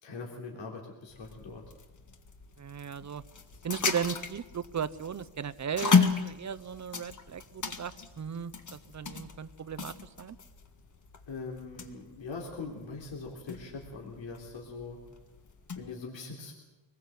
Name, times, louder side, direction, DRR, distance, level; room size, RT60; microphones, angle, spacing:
voice 1, 0.0-1.6 11.3-15.0 15.8-16.5, left 4 dB, 70° left, -1 dB, 3.6 m, -42 dB
sound 1, 1.1-15.9, left 5 dB, 40° left, 1.8 m, -34 dB
voice 2, 2.6-3.2 3.6-10.4, right 7 dB, 35° right, 13 dB, 0.8 m, -36 dB
24.5 x 20.5 x 7.7 m, 1.0 s
wide cardioid pair, 170°, 48 cm